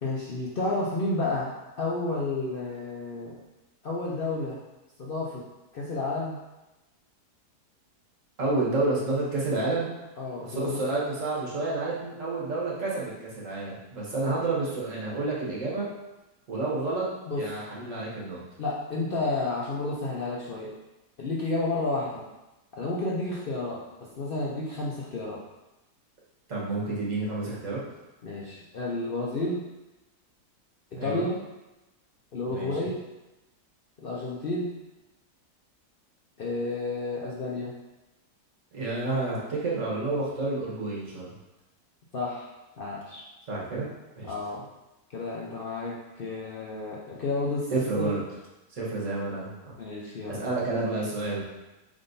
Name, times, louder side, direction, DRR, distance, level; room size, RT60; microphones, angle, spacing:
voice 1, 0.0-3.4 3.8-4.6 5.0-5.5 5.7-6.4 10.2-10.8 17.3-17.4 18.6-20.7 21.2-22.2 22.8-23.8 24.2-25.4 28.2-29.6 30.9-31.4 32.3-33.0 34.0-34.7 36.4-37.7 42.1-42.5 42.8-43.3 44.3-44.7 45.1-48.1 49.8-50.5, left 2 dB, 60° left, -5 dB, 0.5 m, -31 dB
voice 2, 8.4-9.9 10.4-15.9 16.5-17.1 17.4-18.4 26.5-27.8 30.9-31.3 32.5-32.8 38.7-41.3 43.5-43.9 44.2-44.3 47.7-48.2 48.7-49.5 50.3-51.4, right 2 dB, 55° right, -5 dB, 1.4 m, -29 dB
5.3 x 3.8 x 2.6 m, 1.0 s
omnidirectional pair, 1.7 m